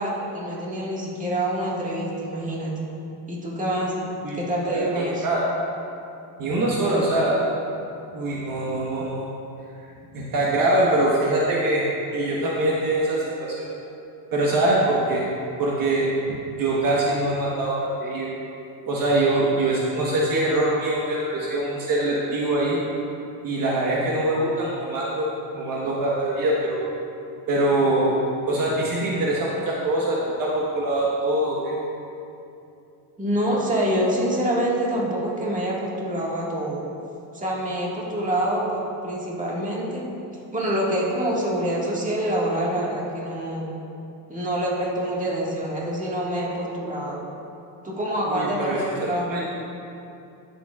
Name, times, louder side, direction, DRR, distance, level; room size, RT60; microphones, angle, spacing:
voice 1, 0.0-2.7 3.3-3.9 4.3-5.3 6.8-7.2 33.2-36.9 37.3-40.1 40.5-43.7 44.3-47.2 47.8-49.4, right 1 dB, 15° right, -5 dB, 1.8 m, -26 dB
voice 2, 4.7-5.5 6.4-7.4 8.1-9.2 10.1-11.8 12.1-13.7 14.3-15.2 15.6-18.3 18.9-22.8 23.4-25.3 25.5-26.8 27.5-28.2 28.5-31.8 48.3-49.4, right 1 dB, 50° right, -5 dB, 1.3 m, -23 dB
13.0 x 7.1 x 2.4 m, 2.7 s
cardioid pair, 115°, 44 cm